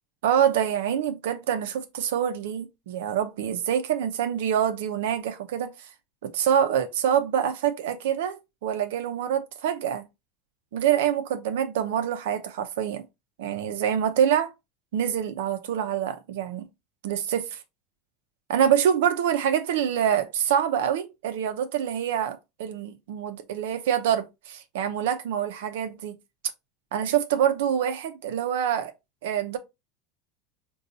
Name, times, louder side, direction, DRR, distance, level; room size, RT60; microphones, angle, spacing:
voice 1, 0.2-5.9 6.2-10.1 10.7-13.1 13.4-14.5 14.9-16.7 17.0-17.6 18.5-26.2 26.9-28.9 29.2-29.6, right 9 dB, 85° right, 0.6 m, -26 dB
4.0 x 2.3 x 2.7 m
supercardioid pair, 130°, 0 cm